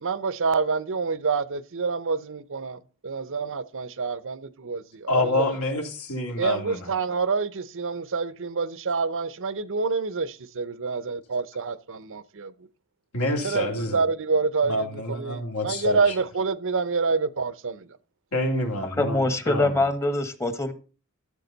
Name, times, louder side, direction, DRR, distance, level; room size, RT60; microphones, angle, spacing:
voice 1, 0.0-5.5 6.4-12.5 13.4-18.0, right 4 dB, 60° right, 0.8 m, -27 dB
voice 2, 5.1-6.9 13.1-14.0 14.6-16.0 18.3-19.8, left 2 dB, 75° left, 3.1 m, -27 dB
voice 3, 19.0-20.7, left 2 dB, 15° left, 1.1 m, -24 dB
13.0 x 7.4 x 4.0 m
head